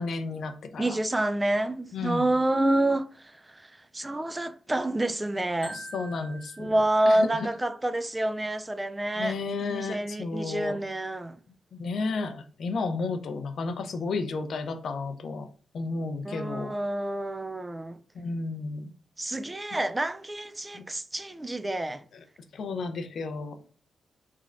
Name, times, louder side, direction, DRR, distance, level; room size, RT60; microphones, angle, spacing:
voice 1, 0.0-1.0 1.9-2.3 5.7-6.7 7.1-7.5 9.2-10.8 11.7-15.5 15.7-16.8 18.1-18.9 20.7-20.8 22.5-23.6, left 3 dB, 70° left, 0.4 m, -32 dB
voice 2, 0.8-5.8 6.6-9.4 9.7-11.4 16.2-18.0 19.2-22.0, right 1 dB, 20° right, 0.3 m, -28 dB
Marimba xylophone, 5.6-7.7, right 2 dB, 5° right, 1.0 m, -46 dB
3.6 x 3.2 x 2.4 m
supercardioid pair, 45°, 0 cm